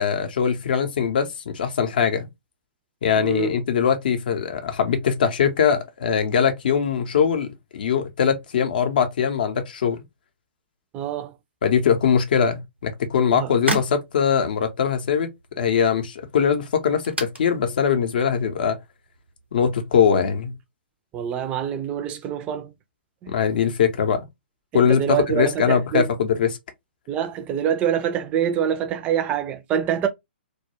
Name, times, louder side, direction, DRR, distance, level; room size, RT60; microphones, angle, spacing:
voice 1, 0.0-2.3 3.0-10.0 11.6-15.3 15.6-18.8 19.5-20.5 23.3-24.2 24.7-26.6, left 7 dB, 55° left, 0.6 m, -21 dB
voice 2, 3.1-3.5 10.9-11.3 13.3-13.5 21.1-22.7 23.2-23.3 24.7-26.1 27.1-30.1, right 9 dB, 20° right, 0.4 m, -25 dB
sound 1, 12.7-20.0, right 1 dB, 90° right, 0.8 m, -36 dB
2.2 x 2.1 x 2.9 m
figure-of-eight pair, 120°, 6 cm